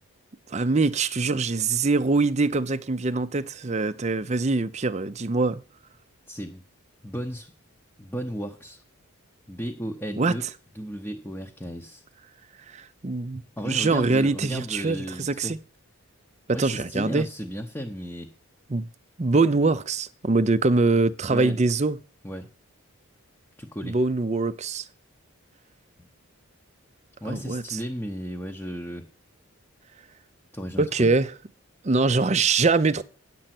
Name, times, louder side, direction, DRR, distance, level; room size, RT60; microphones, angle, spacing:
voice 1, 0.5-5.6 10.2-10.3 12.7-15.6 16.5-17.3 18.7-18.9 19.2-22.0 23.8-24.9 27.3-27.8 30.8-31.3 31.8-33.0, right 3 dB, 30° right, 0.5 m, -23 dB
voice 2, 6.3-6.6 7.0-7.5 8.0-8.8 9.5-10.4 10.7-12.0 13.6-15.5 16.5-18.3 21.2-21.6 22.2-22.5 23.6-24.0 26.0-26.1 27.2-29.0 30.5-31.1, equal, 10° left, 0.8 m, -34 dB
10.0 x 7.6 x 5.9 m
head